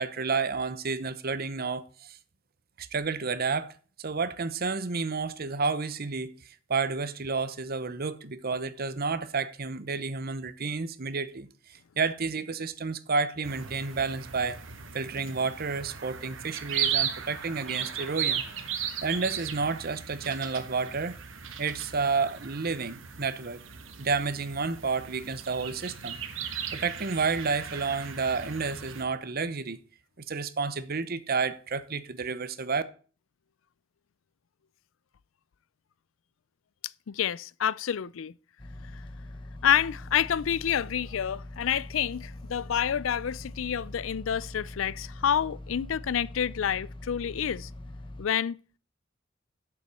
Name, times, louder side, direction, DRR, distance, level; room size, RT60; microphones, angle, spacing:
voice 1, 0.0-2.2 2.8-3.7 4.0-14.6 14.9-18.4 19.0-21.1 21.6-23.6 24.0-26.2 26.7-29.8 30.3-32.8, right 4 dB, 50° right, 0.9 m, -30 dB
sound 1, 13.4-29.0, right 8 dB, 75° right, 1.5 m, -36 dB
voice 2, 37.1-38.3 39.6-47.7 48.2-48.6, left 9 dB, 80° left, 0.4 m, -28 dB
sound 2, 38.6-48.3, left 1 dB, 25° left, 1.1 m, -43 dB
8.2 x 7.1 x 7.0 m
head